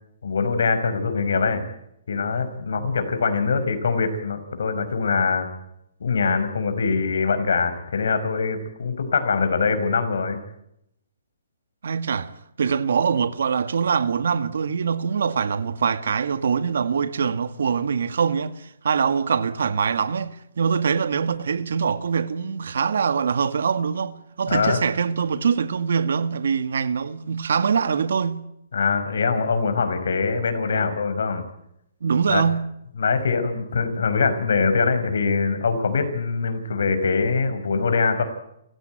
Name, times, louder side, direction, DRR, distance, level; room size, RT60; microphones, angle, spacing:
voice 1, 0.2-1.6 2.1-5.5 6.0-10.4 24.5-24.8 28.7-31.4 32.3-32.4 33.0-38.2, left 4 dB, 70° left, 5.4 m, -23 dB
voice 2, 11.8-12.3 12.6-28.4 32.0-32.6, right 6 dB, 65° right, 1.8 m, -23 dB
29.5 x 15.5 x 9.2 m
hypercardioid pair, 175°, 0 cm